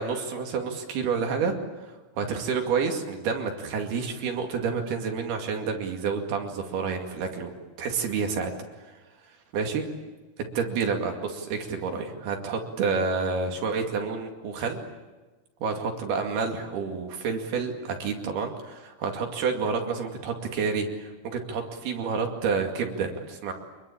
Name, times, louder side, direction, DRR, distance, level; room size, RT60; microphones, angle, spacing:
voice 1, 0.0-8.5 9.5-9.9 10.6-14.8 15.6-23.5, right 5 dB, 75° right, 3 dB, 4.3 m, -29 dB
25.5 x 22.5 x 8.7 m, 1.2 s
omnidirectional pair, 4.6 m